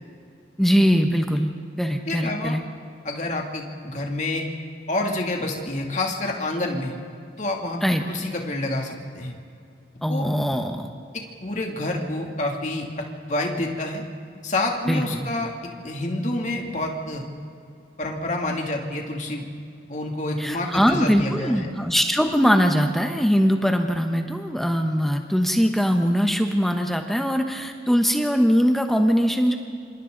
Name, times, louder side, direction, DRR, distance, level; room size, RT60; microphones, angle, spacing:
voice 1, 0.6-1.5 1.8-2.6 7.8-8.0 10.0-10.9 14.9-15.3 20.4-29.6, equal, ahead, 4 dB, 1.0 m, -21 dB
voice 2, 2.1-2.6 3.0-4.5 4.9-6.9 7.4-7.8 8.1-9.3 10.1-10.3 11.1-14.0 14.4-15.5 15.8-17.2 18.0-19.5 19.9-21.7, left 2 dB, 40° left, 1 dB, 2.7 m, -28 dB
27.5 x 26.0 x 4.0 m, 2.4 s
head